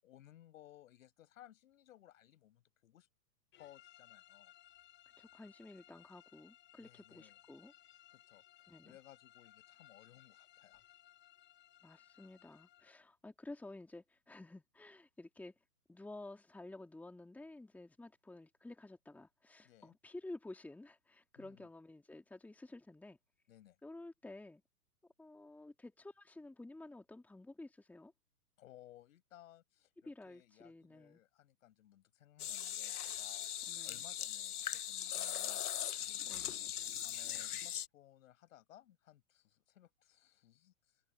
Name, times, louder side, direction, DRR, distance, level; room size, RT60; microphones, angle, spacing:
voice 1, 0.0-3.1 3.6-4.5 6.8-7.4 8.1-10.8 19.6-20.0 21.4-21.7 23.5-23.8 28.6-33.5 33.8-35.7 36.1-36.4 36.9-41.0, left 13 dB, 55° left, 5.8 m, -61 dB
sound 1, 3.5-13.0, left 13 dB, 25° left, 7.4 m, -63 dB
voice 2, 5.2-7.7 8.7-8.9 11.8-15.5 15.9-23.2 23.8-24.6 25.2-28.1 30.0-31.2 33.6-34.0 36.3-36.7, left 2 dB, 5° left, 2.4 m, -52 dB
sound 2, 32.4-37.9, left 11 dB, 70° left, 0.8 m, -40 dB
hypercardioid pair, 125°, 47 cm